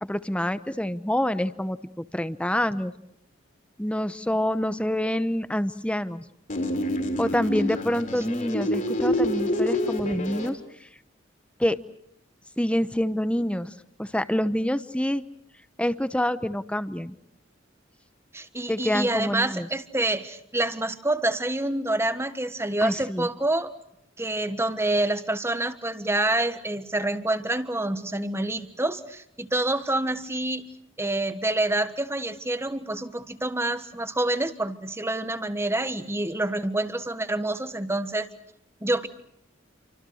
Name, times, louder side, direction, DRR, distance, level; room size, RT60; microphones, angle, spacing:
voice 1, 0.0-2.9 3.8-6.2 7.2-10.9 11.6-11.8 12.6-13.7 14.0-15.2 15.8-17.2 18.7-19.7 22.8-23.3, left 1 dB, 5° left, 13 dB, 0.9 m, -27 dB
sound 1, 6.5-10.5, left 1 dB, 45° left, 4.0 m, -27 dB
voice 2, 18.3-23.7 24.2-30.7 31.0-38.3 38.8-39.1, right 2 dB, 15° right, 10 dB, 1.4 m, -27 dB
29.0 x 25.0 x 6.4 m, 0.76 s
head